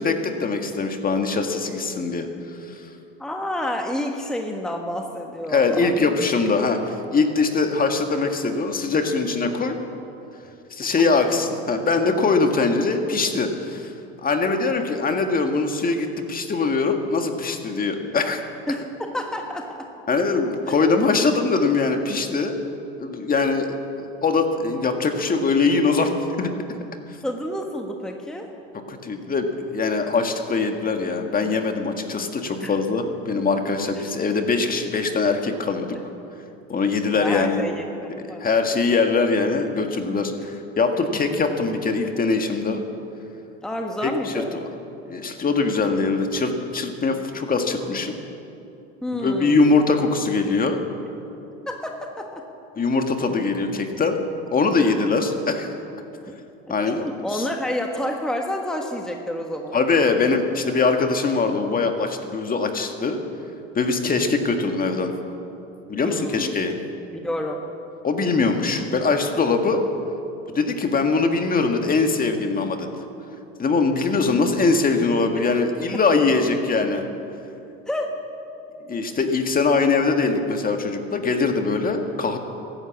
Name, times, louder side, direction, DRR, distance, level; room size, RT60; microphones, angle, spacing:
voice 1, 0.0-2.3 2.7-2.8 5.5-9.8 10.7-13.9 14.2-18.4 20.1-22.5 23.0-26.1 26.4-26.5 28.9-36.0 36.7-37.6 38.4-42.8 44.0-44.7 45.0-48.1 49.2-50.8 52.7-54.2 54.5-55.7 56.7-57.0 57.3-57.4 59.7-63.2 63.7-65.1 65.9-66.7 68.0-69.8 70.5-72.9 73.6-77.0 78.9-82.4, left 4 dB, 25° left, 5 dB, 1.7 m, -22 dB
voice 2, 3.2-6.1 18.7-19.9 20.7-20.8 27.2-28.5 32.6-32.8 37.1-38.5 43.6-44.6 49.0-49.7 51.7-52.4 56.7-56.8 57.0-59.8 66.0-66.5 67.1-67.6 75.9-76.0 77.9-78.2, left 1 dB, ahead, 2 dB, 1.3 m, -29 dB
14.5 x 12.0 x 8.5 m, 2.8 s
supercardioid pair, 95°, 32 cm